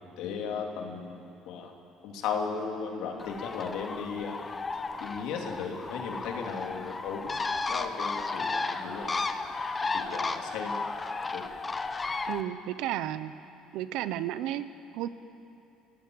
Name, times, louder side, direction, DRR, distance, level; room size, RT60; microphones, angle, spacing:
voice 1, 0.2-1.7 2.0-4.4 5.0-7.4 7.7-9.1 9.9-10.8 11.3-11.5, left 5 dB, 75° left, 1 dB, 3.2 m, -36 dB
Bird, 3.2-12.4, left 3 dB, 25° left, 1.2 m, -34 dB
voice 2, 12.3-13.3 13.7-15.1, right 12 dB, 80° right, 13 dB, 0.9 m, -33 dB
29.5 x 15.5 x 8.0 m, 2.8 s
supercardioid pair, 95°, 0 cm